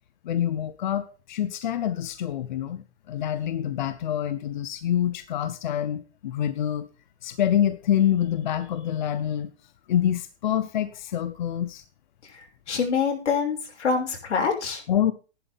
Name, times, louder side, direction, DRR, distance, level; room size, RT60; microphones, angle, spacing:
voice 1, 0.2-6.9 7.2-9.5 9.9-11.8 14.9-15.1, left 10 dB, 45° left, 11 dB, 0.9 m, -26 dB
voice 2, 12.7-14.8, left 5 dB, 85° left, 2 dB, 6.1 m, -25 dB
14.0 x 11.5 x 3.6 m, 0.33 s
hypercardioid pair, 175°, 34 cm